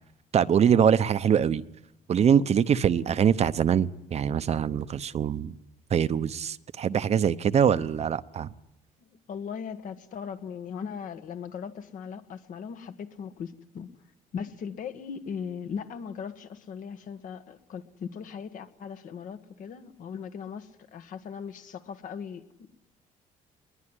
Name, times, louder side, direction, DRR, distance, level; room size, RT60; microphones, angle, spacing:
voice 1, 0.3-1.6 2.1-5.5 5.9-8.5, right 8 dB, 50° right, 0.8 m, -23 dB
voice 2, 9.1-13.9 14.3-22.7, left 7 dB, 65° left, 1.7 m, -38 dB
21.0 x 20.5 x 10.0 m
cardioid pair, 95°, 15 cm